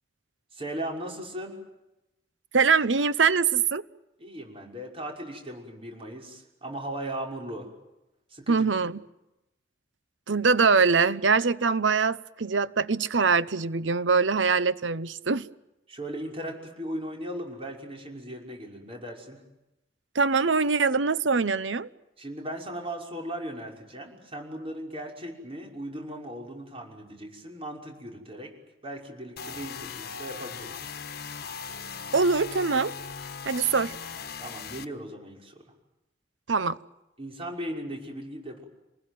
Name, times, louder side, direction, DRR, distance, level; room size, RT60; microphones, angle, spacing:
voice 1, 0.5-1.6 4.2-7.7 8.3-8.7 15.9-19.4 22.2-28.5 28.8-30.9 34.4-35.6 37.2-38.6, right 1 dB, 30° right, 5.9 m, -37 dB
voice 2, 2.5-3.8 8.5-9.0 10.3-15.5 20.1-21.9 32.1-32.9 33.5-33.9 36.5-36.8, right 5 dB, 85° right, 0.9 m, -23 dB
sound 1, 29.4-34.8, left 6 dB, 60° left, 1.3 m, -39 dB
28.0 x 20.5 x 9.4 m
head